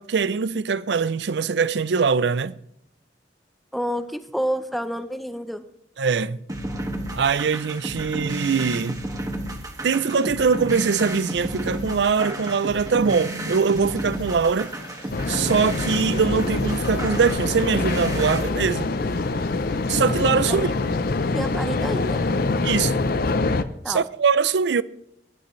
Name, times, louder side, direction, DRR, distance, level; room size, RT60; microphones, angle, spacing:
voice 1, 0.0-2.5 6.0-6.4 7.1-9.0 9.8-14.7 15.3-18.9 19.9-20.7 22.6-22.9 23.9-24.8, right 5 dB, 75° right, 0.5 m, -22 dB
voice 2, 3.7-5.6 20.5-20.6 21.3-22.2 23.8-24.0, equal, ahead, 0.7 m, -28 dB
sound 1, 6.5-18.5, right 1 dB, 20° right, 1.6 m, -32 dB
Stream, 10.7-22.7, left 3 dB, 85° left, 5.2 m, -48 dB
sound 2, 15.1-23.6, left 3 dB, 55° left, 0.6 m, -25 dB
20.5 x 11.5 x 3.2 m
head